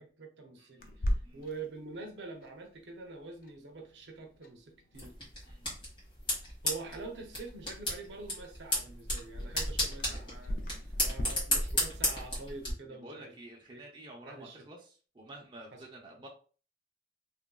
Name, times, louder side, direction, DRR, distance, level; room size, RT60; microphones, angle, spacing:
voice 1, 0.0-5.1 6.6-13.3 13.7-13.8 14.2-14.7 15.7-15.8, right 3 dB, 80° right, 3 dB, 0.6 m, -45 dB
voice 2, 0.6-1.5 5.5-5.7 12.9-16.3, right 1 dB, 25° right, -1 dB, 0.6 m, -50 dB
Clock, 0.8-11.2, equal, 50° left, 0.4 m, -42 dB
sound 1, 4.9-12.7, left 1 dB, 30° left, 1.5 m, -34 dB
2.9 x 2.5 x 2.2 m, 0.39 s
head